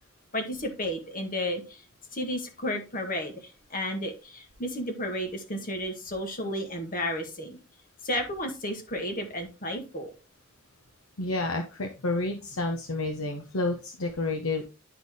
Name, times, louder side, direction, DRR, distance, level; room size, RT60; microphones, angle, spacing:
voice 1, 0.3-1.8 2.1-7.6 8.0-10.1, left 1 dB, 45° left, 4 dB, 1.7 m, -32 dB
voice 2, 11.2-14.6, left 2 dB, 85° left, 3 dB, 0.9 m, -30 dB
10.0 x 4.1 x 3.6 m, 0.29 s
head